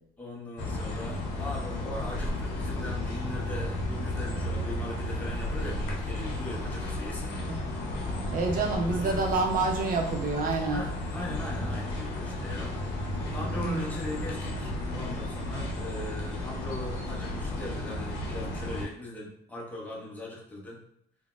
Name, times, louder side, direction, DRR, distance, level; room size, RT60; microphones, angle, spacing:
voice 1, 0.2-7.5 8.8-9.3 10.7-20.8, left 1 dB, 10° left, -3 dB, 0.8 m, -40 dB
sound 1, 0.6-18.8, left 1 dB, 90° left, 0.7 m, -33 dB
voice 2, 8.3-10.8 13.6-14.0, right 3 dB, 55° right, 2 dB, 0.7 m, -28 dB
3.8 x 2.2 x 2.4 m, 0.72 s
cardioid pair, 110°, 17 cm